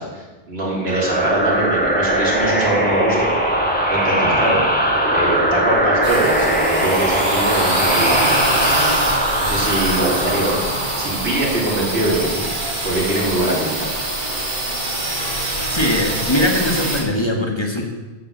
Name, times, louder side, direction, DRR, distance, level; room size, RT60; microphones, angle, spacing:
voice 1, 0.0-3.3 3.9-4.6 5.1-8.4 9.4-10.6 11.0-12.4 12.8-13.9, right 1 dB, 80° right, -3 dB, 3.2 m, -22 dB
sound 1, 0.9-12.2, right 1 dB, 10° left, 1.9 m, -20 dB
sound 2, 6.0-17.0, right 1 dB, 50° right, 2.0 m, -24 dB
voice 2, 15.7-17.8, left 1 dB, 25° left, 1 dB, 1.5 m, -20 dB
13.0 x 5.9 x 7.2 m, 1.2 s
omnidirectional pair, 1.0 m